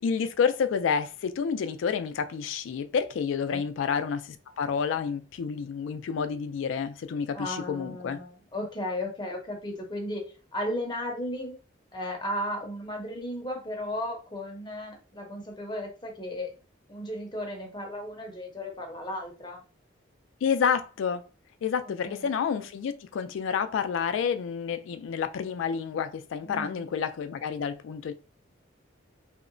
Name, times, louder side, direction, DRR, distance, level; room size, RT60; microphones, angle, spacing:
voice 1, 0.0-8.2 20.4-21.2 21.6-28.1, left 6 dB, 80° left, 0.3 m, -29 dB
voice 2, 7.3-10.2 10.5-11.5 11.9-16.5 16.9-19.6 22.0-22.3 26.4-26.9, left 1 dB, 25° left, 0.6 m, -35 dB
2.8 x 2.0 x 2.5 m
head